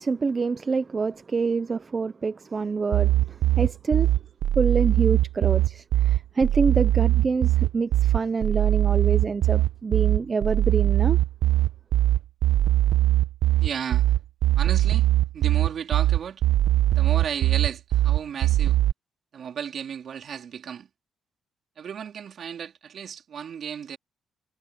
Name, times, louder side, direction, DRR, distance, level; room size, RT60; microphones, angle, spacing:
voice 1, 0.0-4.1 4.6-11.2, right 4 dB, 35° right, 0.6 m, -26 dB
sound 1, 2.9-18.9, right 14 dB, 75° right, 1.0 m, -21 dB
voice 2, 13.6-14.1 14.6-15.1 15.3-16.4 16.9-18.8 19.3-20.9 21.8-24.0, right 8 dB, 60° right, 3.8 m, -34 dB
cardioid pair, 90°, 0 cm